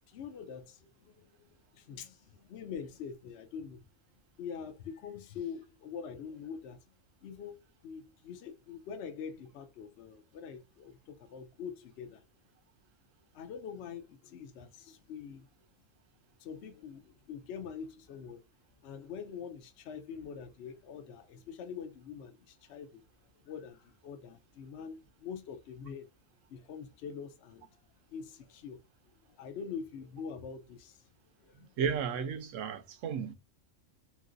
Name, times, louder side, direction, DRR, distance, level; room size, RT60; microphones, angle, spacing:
voice 1, 0.1-1.5 1.7-3.8 4.4-6.8 7.2-12.2 13.3-15.5 16.4-18.4 18.8-23.0 23.4-26.1 26.5-27.8 28.1-28.8 29.3-31.0 31.4-31.7, left 6 dB, 65° left, 0.9 m, -44 dB
voice 2, 31.8-33.3, right 7 dB, 90° right, 1.0 m, -33 dB
3.1 x 2.9 x 2.5 m
omnidirectional pair, 1.3 m